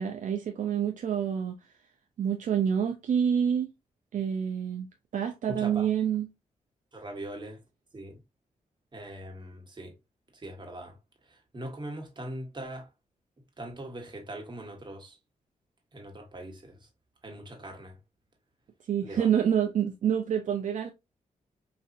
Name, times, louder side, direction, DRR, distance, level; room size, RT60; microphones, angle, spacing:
voice 1, 0.0-1.6 2.2-3.7 4.1-4.9 5.1-6.3 18.9-20.9, right 8 dB, 65° right, 0.5 m, -27 dB
voice 2, 5.5-5.9 6.9-7.6 7.9-8.2 8.9-9.9 10.3-11.0 11.3-12.9 13.6-15.2 15.9-16.9 17.2-18.0 19.0-19.3, right 1 dB, 35° right, 1.4 m, -41 dB
4.0 x 2.6 x 2.5 m
cardioid pair, 70°, 14 cm